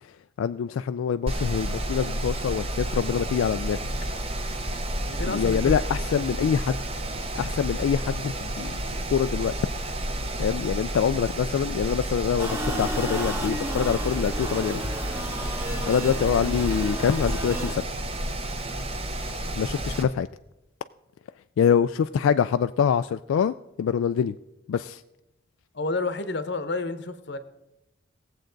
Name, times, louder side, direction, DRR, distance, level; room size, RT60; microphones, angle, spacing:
voice 1, 0.4-3.9 5.2-6.8 7.4-8.8 9.1-9.5 10.4-14.8 15.2-15.3 15.9-17.8 19.6-20.3 21.6-24.3 24.7-25.0, left 7 dB, 90° left, 11 dB, 0.3 m, -25 dB
Mechanical fan, 1.3-20.0, right 1 dB, 30° right, 0.8 m, -31 dB
voice 2, 5.0-5.7 6.1-6.2 15.7-15.9 18.7-18.8 25.7-27.4, left 3 dB, 60° left, 11 dB, 0.8 m, -31 dB
sound 1, 12.4-17.7, equal, 10° right, 1.1 m, -32 dB
18.5 x 7.7 x 3.9 m, 0.93 s
head